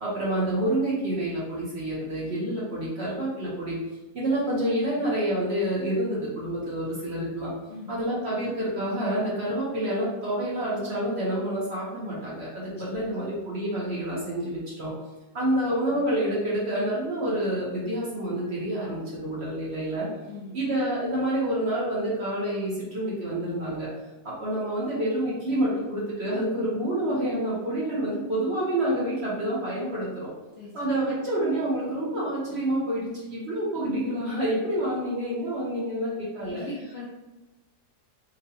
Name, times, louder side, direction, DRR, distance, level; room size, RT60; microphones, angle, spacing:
voice 1, 0.0-3.8 4.1-7.5 7.9-14.9 15.3-20.1 20.5-23.9 24.2-30.3 30.7-36.6, right 1 dB, 50° right, -6 dB, 0.9 m, -28 dB
voice 2, 7.7-8.0 12.9-13.5 20.3-20.6 30.6-31.1 36.4-37.1, left 2 dB, 60° left, -6 dB, 0.6 m, -41 dB
3.8 x 2.2 x 2.7 m, 1.1 s
omnidirectional pair, 1.7 m